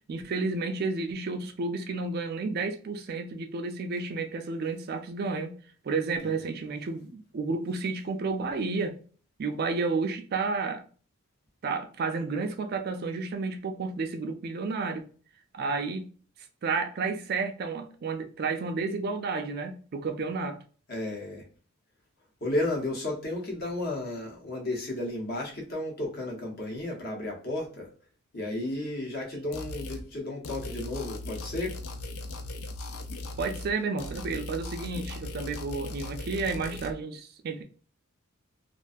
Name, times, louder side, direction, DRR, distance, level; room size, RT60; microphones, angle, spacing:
voice 1, 0.1-5.6 5.8-9.0 9.4-10.8 11.6-15.1 15.5-16.1 16.6-20.6 33.4-37.6, right 4 dB, 45° right, 0.3 m, -31 dB
voice 2, 20.9-21.4 22.4-27.9 28.3-31.8, left 1 dB, 45° left, 0.9 m, -33 dB
sound 1, 29.5-30.0 30.4-33.7 34.0-36.9, left 2 dB, 70° left, 0.4 m, -38 dB
2.4 x 2.2 x 2.5 m
head